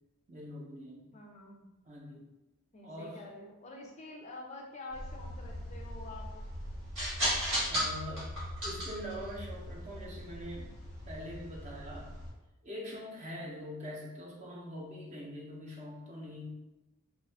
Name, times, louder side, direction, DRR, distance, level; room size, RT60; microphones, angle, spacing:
voice 1, 0.3-1.1 1.9-2.3 2.8-3.2 7.7-8.3 8.6-10.7 11.0-12.1 12.6-16.5, equal, 35° right, -3 dB, 0.6 m, -43 dB
voice 2, 1.1-1.7 2.7-6.5, left 2 dB, 30° left, 0 dB, 0.3 m, -47 dB
sound 1, 4.9-12.3, equal, 85° right, 1.5 m, -37 dB
2.7 x 2.3 x 3.3 m, 1.0 s
head